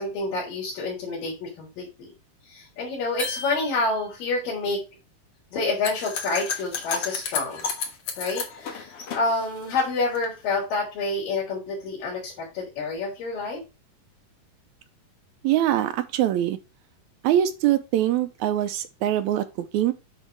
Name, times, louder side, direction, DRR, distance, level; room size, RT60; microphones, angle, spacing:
voice 1, 0.0-2.1 2.5-4.8 5.5-7.7 8.2-13.6, left 3 dB, 85° left, 5.1 m, -28 dB
sound 1, 3.2-4.3, left 1 dB, 20° left, 2.2 m, -36 dB
sound 2, 5.8-10.3, left 6 dB, 55° left, 1.9 m, -32 dB
voice 2, 15.4-16.6 17.2-19.9, right 12 dB, 80° right, 1.7 m, -23 dB
10.0 x 3.6 x 4.5 m
omnidirectional pair, 3.9 m